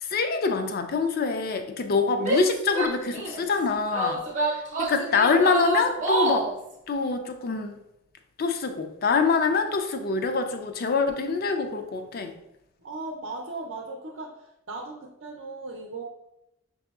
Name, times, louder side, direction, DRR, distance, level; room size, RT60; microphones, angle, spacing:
voice 1, 0.0-4.2 4.8-6.5 6.9-7.8 8.4-12.3, left 4 dB, 50° left, 7 dB, 0.4 m, -25 dB
Female speech woman speaking / Yell, 2.2-3.4 3.9-6.6, right 2 dB, 40° right, 0.7 m, -28 dB
voice 2, 12.8-14.3 14.7-16.0, right 3 dB, 75° right, -1 dB, 0.6 m, -37 dB
5.9 x 2.7 x 2.3 m, 0.86 s
head